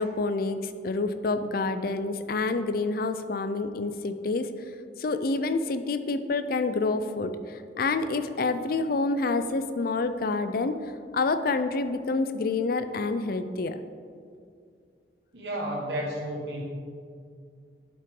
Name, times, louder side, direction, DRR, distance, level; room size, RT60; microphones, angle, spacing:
voice 1, 0.0-4.5 5.0-10.8 11.1-13.8, left 3 dB, 55° left, 10 dB, 0.5 m, -28 dB
voice 2, 15.3-16.6, right 1 dB, 70° right, -2 dB, 1.5 m, -32 dB
11.5 x 5.5 x 3.8 m, 2.2 s
head